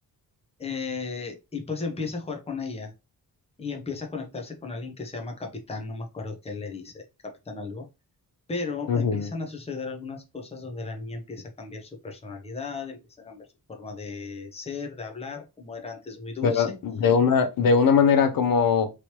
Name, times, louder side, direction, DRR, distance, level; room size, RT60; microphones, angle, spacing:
voice 1, 0.6-2.9 3.6-7.9 8.5-16.8, left 4 dB, 15° left, 0.6 m, -35 dB
voice 2, 8.9-9.3 16.4-18.9, left 6 dB, 65° left, 0.5 m, -21 dB
3.1 x 3.0 x 2.8 m
wide cardioid pair, 175°, 37 cm